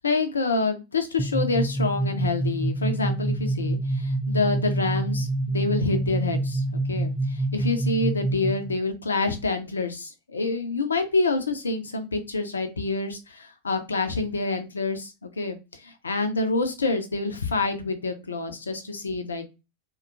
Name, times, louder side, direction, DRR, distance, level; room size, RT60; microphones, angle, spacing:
voice 1, 0.0-19.4, left 3 dB, 75° left, 8 dB, 0.5 m, -27 dB
sound 1, 1.2-8.7, right 2 dB, 20° right, 0.4 m, -27 dB
2.8 x 2.2 x 2.4 m, 0.27 s
figure-of-eight pair, 90°, 0 cm